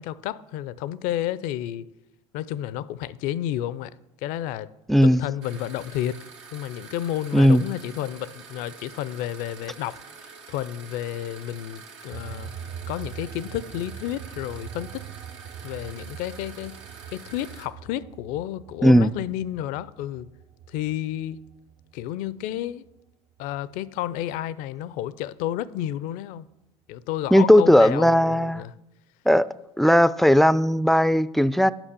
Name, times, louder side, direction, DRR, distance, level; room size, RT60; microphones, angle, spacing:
voice 1, 0.0-1.9 2.3-4.7 5.0-6.2 6.5-12.5 12.9-15.0 15.6-16.8 17.1-20.3 20.7-21.4 21.9-22.9 23.4-26.5 26.9-28.7, left 12 dB, 70° left, 0.5 m, -31 dB
voice 2, 4.9-5.2 7.3-7.6 18.8-19.1 27.3-28.6 29.3-29.5 29.8-31.7, equal, ahead, 0.3 m, -17 dB
sound 1, 5.4-17.7, right 5 dB, 90° right, 1.3 m, -46 dB
sound 2, 12.1-23.0 23.4-24.8, right 8 dB, 55° right, 0.5 m, -43 dB
8.9 x 5.5 x 6.7 m
hypercardioid pair, 70°, 15 cm